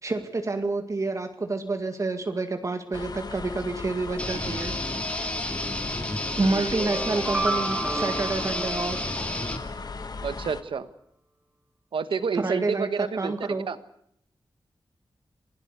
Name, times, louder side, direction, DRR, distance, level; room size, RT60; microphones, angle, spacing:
voice 1, 0.0-4.7 6.4-9.0 12.3-12.9 13.2-13.7, right 3 dB, 40° right, 6 dB, 2.0 m, -28 dB
sound 1, 2.9-10.6, left 4 dB, 50° left, 1.5 m, -37 dB
sound 2, 4.2-9.6, left 1 dB, 15° left, 2.3 m, -31 dB
sound 3, 6.7-9.7, right 2 dB, 15° right, 2.3 m, -31 dB
voice 2, 10.2-10.9 11.9-13.3 13.7-13.8, right 5 dB, 85° right, 12 dB, 1.4 m, -29 dB
26.5 x 17.0 x 8.2 m, 0.72 s
wide cardioid pair, 140°, 8 cm